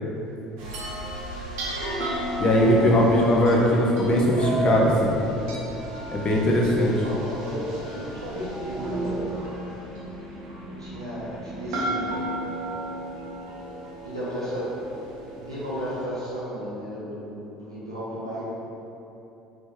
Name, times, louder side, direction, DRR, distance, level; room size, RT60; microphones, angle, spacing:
sound 1, 0.6-16.0, right 1 dB, 60° right, 0.7 m, -33 dB
voice 1, 2.4-5.1 6.1-6.9, left 1 dB, 35° left, -2 dB, 0.6 m, -20 dB
voice 2, 7.0-9.2 10.7-12.1 14.0-14.7 15.4-18.4, equal, 85° right, -10 dB, 0.9 m, -34 dB
3.2 x 3.1 x 2.9 m, 3.0 s
figure-of-eight pair, 60°, 3 cm